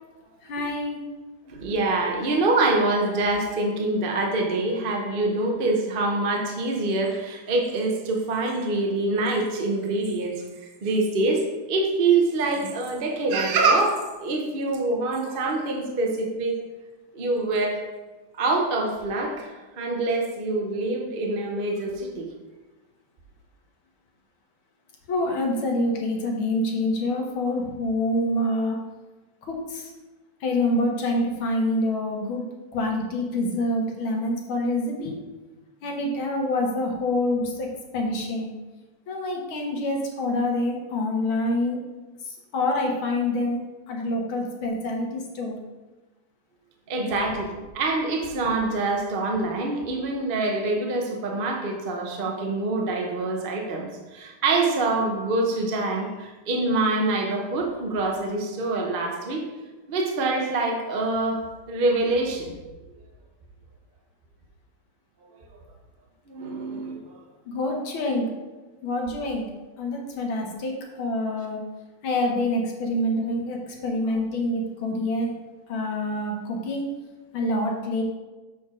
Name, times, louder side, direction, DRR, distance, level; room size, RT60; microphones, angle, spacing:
voice 1, 0.5-1.0 25.1-28.8 29.5-29.9 30.4-32.4 32.7-35.2 35.8-37.7 37.9-38.5 39.1-41.8 42.5-43.6 43.9-45.6 67.5-68.3 68.8-69.4 69.8-71.6 72.0-75.3 75.7-76.8 77.3-78.0, left 1 dB, 75° left, 1 dB, 1.9 m, -26 dB
voice 2, 1.5-10.4 10.8-16.6 17.1-17.8 18.4-22.3 46.9-59.4 59.9-62.5 66.3-67.2, right 2 dB, 55° right, 1 dB, 0.6 m, -25 dB
7.3 x 4.4 x 4.9 m, 1.2 s
omnidirectional pair, 2.3 m